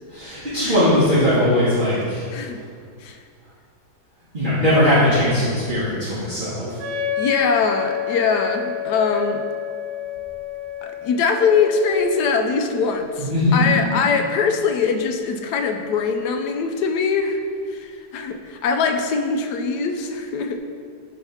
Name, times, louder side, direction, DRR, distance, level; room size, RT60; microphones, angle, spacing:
voice 1, 0.1-2.3 4.3-6.8 13.2-13.5, left 1 dB, 35° right, -11 dB, 1.4 m, -19 dB
Wind instrument woodwind instrument, 6.8-12.4, left 7 dB, 75° right, 1.3 m, -29 dB
voice 2, 7.2-9.4 10.8-17.4 17.7-20.6, left 5 dB, 80° left, 6 dB, 1.2 m, -22 dB
7.4 x 3.2 x 5.7 m, 2.1 s
omnidirectional pair, 1.7 m